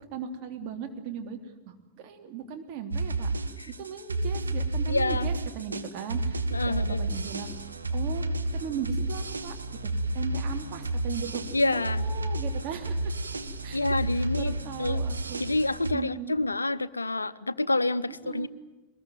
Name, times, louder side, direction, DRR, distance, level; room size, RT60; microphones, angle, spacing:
voice 1, 0.1-1.4 1.6-3.3 3.8-6.4 6.6-7.5 7.9-8.2 8.5-9.5 9.8-11.4 11.7-13.1 13.6-15.4 15.9-16.3 18.2-18.5, right 7 dB, 45° right, 4 dB, 3.3 m, -37 dB
sound 1, 2.9-15.9, right 2 dB, 80° right, 1.3 m, -31 dB
voice 2, 4.9-5.3 6.5-7.1 11.5-12.1 13.7-15.0 15.4-18.5, left 2 dB, 80° left, 16 dB, 0.7 m, -28 dB
23.5 x 20.5 x 9.3 m, 1.1 s
figure-of-eight pair, 90°, 0 cm